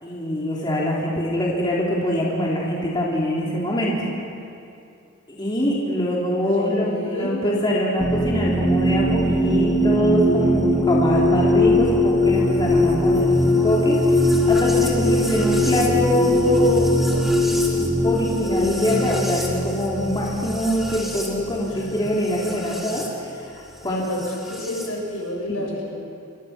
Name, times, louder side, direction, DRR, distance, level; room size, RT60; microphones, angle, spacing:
voice 1, 0.0-4.1 5.3-14.0 14.5-16.9 17.7-24.0 25.5-25.7, equal, 20° left, -5 dB, 3.7 m, -24 dB
voice 2, 6.5-7.7 21.7-22.1 23.8-26.0, left 1 dB, 75° left, -1 dB, 7.3 m, -30 dB
sound 1, 8.0-23.1 24.2-24.9, left 1 dB, ahead, 3.2 m, -21 dB
28.5 x 24.5 x 6.1 m, 2.5 s
head